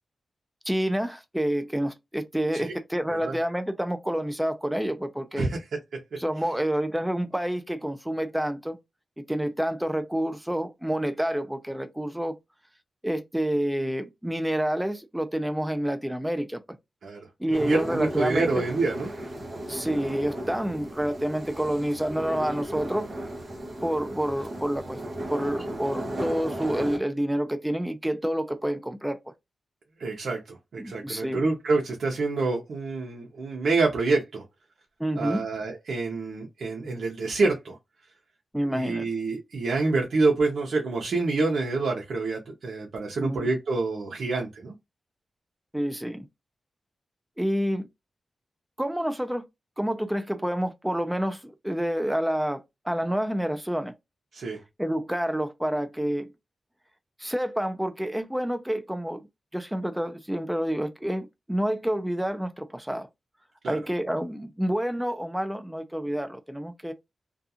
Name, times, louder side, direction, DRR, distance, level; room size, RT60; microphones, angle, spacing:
voice 1, 0.7-5.5 6.2-8.8 9.2-12.4 13.0-16.6 17.4-18.6 19.7-23.1 23.8-25.0 25.3-29.2 30.8-31.5 35.0-35.4 38.5-39.1 43.2-43.5 45.7-46.3 47.4-47.9 48.8-49.4 49.8-53.9 54.8-56.3 57.2-59.3 59.5-63.1 63.7-66.9, equal, 5° right, 0.5 m, -28 dB
sound 1, 17.5-27.0, right 1 dB, 45° right, 1.1 m, -35 dB
voice 2, 17.5-19.1 30.0-34.4 35.1-37.8 38.7-44.7 54.3-54.6 63.6-63.8, right 3 dB, 75° right, 0.7 m, -27 dB
2.4 x 2.3 x 2.7 m
wide cardioid pair, 95°, 0 cm